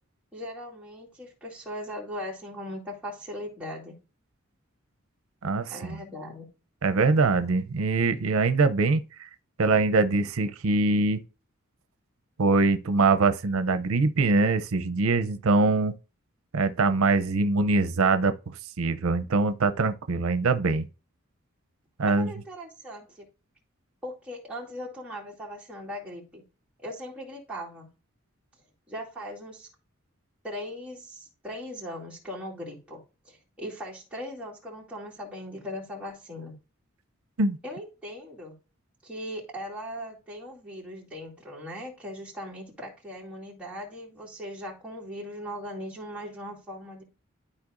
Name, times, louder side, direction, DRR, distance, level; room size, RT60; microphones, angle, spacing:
voice 1, 0.3-4.0 5.7-6.5 22.1-23.3 24.0-26.4 26.8-27.9 28.9-29.7 30.4-36.6 37.6-38.6 39.0-47.0, equal, 5° right, 2.3 m, -39 dB
voice 2, 5.4-6.0 6.8-9.0 9.6-11.2 12.4-15.9 16.5-20.9 22.0-22.3 37.4-37.6, right 3 dB, 85° right, 0.6 m, -23 dB
12.5 x 4.2 x 2.5 m
head